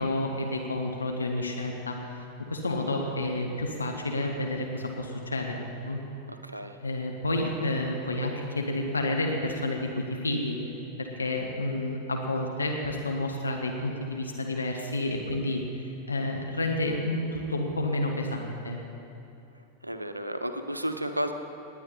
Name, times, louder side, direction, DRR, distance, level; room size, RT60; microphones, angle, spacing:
voice 1, 0.0-2.0 2.5-6.0 6.8-10.6 11.0-15.6 16.1-18.8, left 1 dB, 80° left, 2 dB, 1.1 m, -30 dB
voice 2, 6.3-6.7 19.8-21.3, right 1 dB, 85° right, 8 dB, 0.7 m, -32 dB
19.5 x 9.3 x 4.3 m, 2.7 s
figure-of-eight pair, 90°, 0 cm